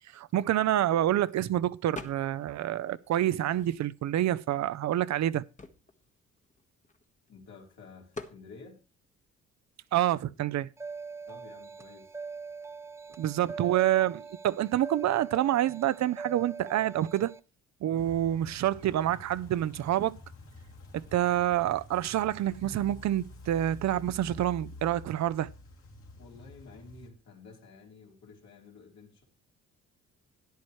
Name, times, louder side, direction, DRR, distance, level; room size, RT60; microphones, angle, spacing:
voice 1, 0.1-5.4 9.9-10.7 13.2-17.3 17.8-20.2 20.9-25.5, right 12 dB, 65° right, 0.7 m, -27 dB
sound 1, 1.9-2.5 2.9-4.1 4.7-4.8 5.1-7.3 8.1-8.4, left 3 dB, 25° left, 1.4 m, -46 dB
voice 2, 7.3-8.8 11.3-12.2 26.2-29.2, left 4 dB, 65° left, 3.7 m, -51 dB
sound 2, 10.8-17.4, right 4 dB, 10° right, 0.5 m, -42 dB
sound 3, 17.9-27.1, left 2 dB, 45° left, 2.6 m, -49 dB
13.0 x 10.5 x 3.2 m
cardioid pair, 90°, 30 cm